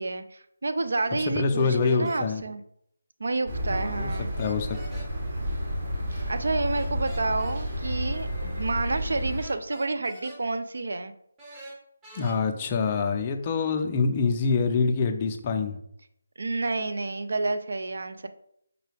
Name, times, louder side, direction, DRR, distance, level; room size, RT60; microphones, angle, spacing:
voice 1, 0.0-2.6 3.2-4.3 6.3-11.1 16.4-18.3, right 3 dB, 70° right, 10 dB, 0.4 m, -29 dB
voice 2, 1.3-2.4 3.7-5.1 12.1-15.8, left 4 dB, 25° left, 4 dB, 0.4 m, -26 dB
sound 1, 2.0-2.2 4.1-5.1 6.7-7.6 9.4-10.4 11.4-12.4, right 1 dB, 15° right, 0.7 m, -45 dB
sound 2, 3.5-9.4, equal, 50° right, 1.1 m, -31 dB
4.8 x 2.3 x 3.3 m, 0.71 s
figure-of-eight pair, 160°, 0 cm